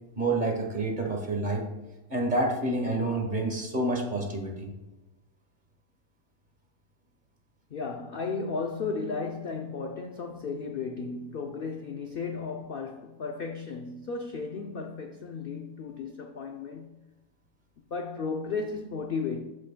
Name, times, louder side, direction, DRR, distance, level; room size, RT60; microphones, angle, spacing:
voice 1, 0.1-1.7 2.1-4.7, right 2 dB, 35° right, 1.2 m, -28 dB
voice 2, 7.7-17.0 17.9-19.4, left 4 dB, 60° left, 0.5 m, -34 dB
13.0 x 4.9 x 2.2 m
omnidirectional pair, 1.6 m